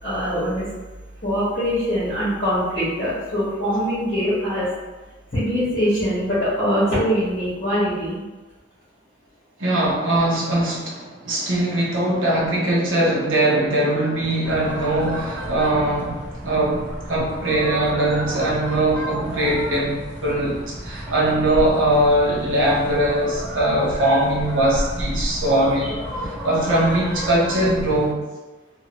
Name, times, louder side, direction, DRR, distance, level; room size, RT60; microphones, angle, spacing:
voice 1, 0.0-0.7 1.2-4.7 5.3-8.2 25.8-25.9, equal, 45° left, -13 dB, 1.2 m, -23 dB
voice 2, 9.6-28.2, right 1 dB, 85° right, -6 dB, 1.1 m, -21 dB
sound 1, 14.4-28.1, equal, 10° left, 1.0 m, -32 dB
2.9 x 2.9 x 3.0 m, 1.2 s
head